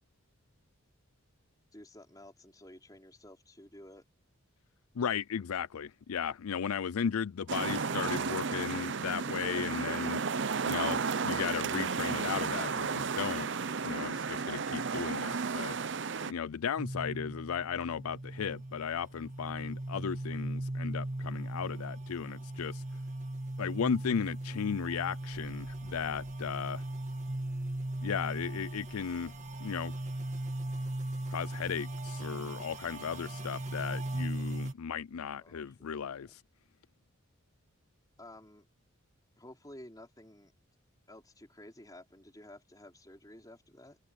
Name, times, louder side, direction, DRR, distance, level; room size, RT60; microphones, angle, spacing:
voice 1, 1.7-4.0 35.4-36.4 38.2-38.7 39.4-40.5 41.1-44.0, left 1 dB, 15° left, 4.7 m, -53 dB
voice 2, 5.0-10.2 10.6-13.5 13.8-15.8 16.3-22.8 23.6-26.8 28.0-29.3 29.6-29.9 31.3-36.4, left 7 dB, 85° left, 0.4 m, -35 dB
sound 1, 7.5-16.3, right 5 dB, 55° right, 0.7 m, -33 dB
sound 2, 16.8-34.7, right 1 dB, 35° right, 2.3 m, -38 dB
sound 3, 25.3-31.6, equal, 5° right, 6.5 m, -61 dB
head